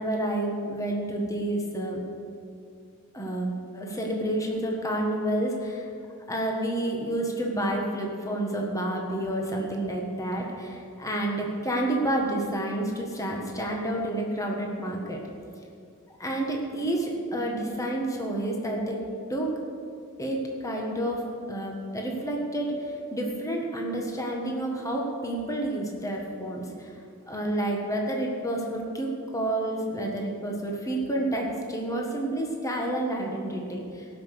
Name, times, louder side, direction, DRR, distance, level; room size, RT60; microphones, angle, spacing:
voice 1, 0.0-2.0 3.1-5.9 6.3-15.2 16.2-19.0 19.3-19.5 20.2-26.9 27.3-34.1, right 1 dB, 15° left, 0 dB, 1.6 m, -29 dB
17.5 x 6.0 x 6.5 m, 2.4 s
head